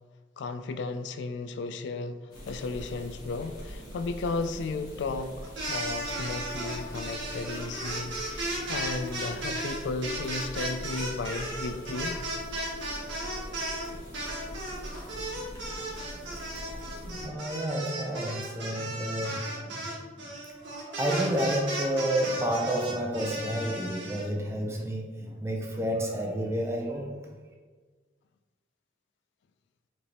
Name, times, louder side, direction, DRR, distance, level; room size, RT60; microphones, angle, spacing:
voice 1, 0.4-12.2, left 3 dB, 65° left, 10 dB, 0.3 m, -34 dB
sound 1, 2.3-17.3, equal, 20° left, 1.1 m, -43 dB
sound 2, 5.4-13.9 14.1-24.2, right 1 dB, 80° right, 1.4 m, -35 dB
voice 2, 16.3-20.3 20.6-27.2, right 1 dB, 15° right, 0 dB, 0.5 m, -31 dB
5.0 x 3.3 x 2.9 m, 1.4 s
head